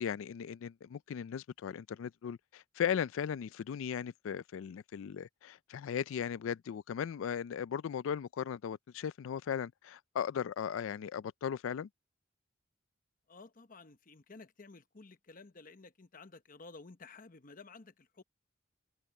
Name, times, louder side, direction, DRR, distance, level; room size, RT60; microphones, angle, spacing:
voice 1, 0.0-11.9, left 8 dB, 80° left, 0.3 m, -37 dB
voice 2, 13.3-18.2, left 3 dB, 45° left, 0.9 m, -53 dB
head